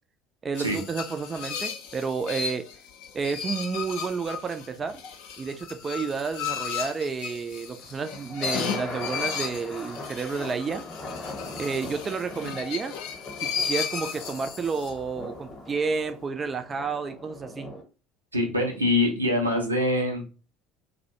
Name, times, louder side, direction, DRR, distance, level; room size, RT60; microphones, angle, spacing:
voice 1, 0.4-2.7 3.1-5.0 5.4-10.8 11.6-12.9 13.4-17.7, right 5 dB, 30° right, 8 dB, 0.3 m, -31 dB
sound 1, 0.5-15.0, left 7 dB, 65° left, 0.4 m, -35 dB
sound 2, 7.6-17.8, left 2 dB, 30° left, 0.8 m, -40 dB
voice 2, 18.3-20.3, left 1 dB, 90° right, 2 dB, 0.5 m, -24 dB
2.3 x 2.0 x 2.7 m, 0.33 s
figure-of-eight pair, 60°, 0 cm